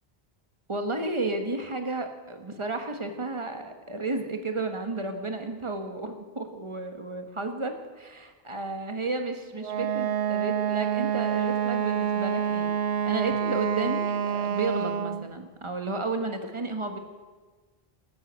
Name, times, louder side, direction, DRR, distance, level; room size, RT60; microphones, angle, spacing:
voice 1, 0.7-17.0, right 2 dB, 30° right, 5 dB, 1.5 m, -32 dB
Wind instrument woodwind instrument, 9.6-15.3, right 8 dB, 85° right, 0.9 m, -27 dB
13.5 x 11.5 x 8.1 m, 1.4 s
omnidirectional pair, 1.1 m